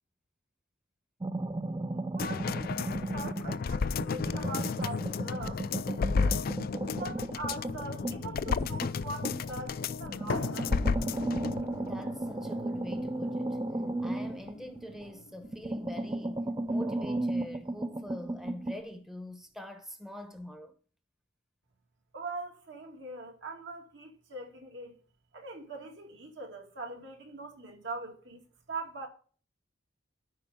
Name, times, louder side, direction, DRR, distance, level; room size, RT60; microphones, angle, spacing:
sound 1, 1.2-3.7 4.0-9.6 10.1-15.1 15.4-18.8, right 2 dB, 20° right, 0.5 m, -35 dB
voice 1, 2.1-6.4 6.9-10.8 22.1-24.9 25.3-29.1, right 2 dB, 65° right, 2.5 m, -42 dB
sound 2, 2.2-11.6 12.0-12.1, left 5 dB, 50° left, 0.4 m, -33 dB
sound 3, 10.3-18.3, left 3 dB, 75° left, 0.8 m, -43 dB
voice 2, 11.7-13.6 14.0-20.7, left 1 dB, ahead, 0.9 m, -44 dB
13.0 x 5.4 x 3.6 m
head